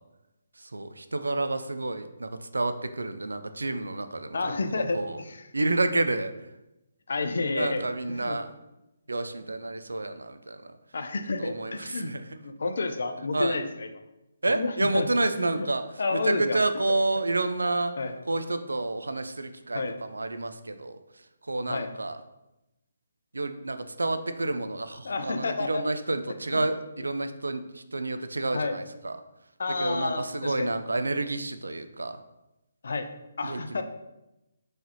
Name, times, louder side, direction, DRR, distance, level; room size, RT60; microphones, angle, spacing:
voice 1, 0.7-4.3 4.7-5.1 5.5-6.3 7.6-8.5 9.1-10.6 11.4-12.2 13.3-13.6 14.4-15.8 16.1-17.9 18.3-19.8 20.1-21.0 21.5-22.2 23.3-27.6 27.9-29.2 29.8-32.2 33.4-33.6, right 2 dB, 70° right, 9 dB, 0.3 m, -29 dB
voice 2, 4.3-5.5 7.1-8.4 10.9-12.1 12.4-13.9 14.5-15.1 15.5-15.7 16.0-16.8 18.0-18.1 19.7-20.0 21.7-21.9 25.0-25.8 26.5-26.7 27.0-27.1 28.5-28.8 29.6-30.7 32.8-33.1 33.4-33.8, left 3 dB, 55° left, 7 dB, 0.4 m, -30 dB
4.4 x 3.2 x 2.7 m, 0.95 s
figure-of-eight pair, 140°, 0 cm